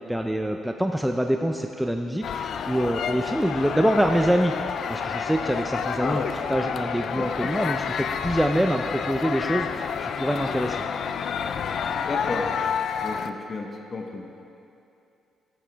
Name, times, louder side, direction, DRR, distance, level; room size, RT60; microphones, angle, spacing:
voice 1, 0.1-10.8, equal, 5° right, 4 dB, 0.5 m, -25 dB
sound 1, 2.2-13.3, left 7 dB, 65° left, 0.4 m, -29 dB
voice 2, 7.1-7.5 12.0-12.5 13.0-14.3, left 3 dB, 40° left, 2 dB, 1.0 m, -32 dB
14.0 x 8.5 x 3.5 m, 2.6 s
cardioid pair, 90°, 0 cm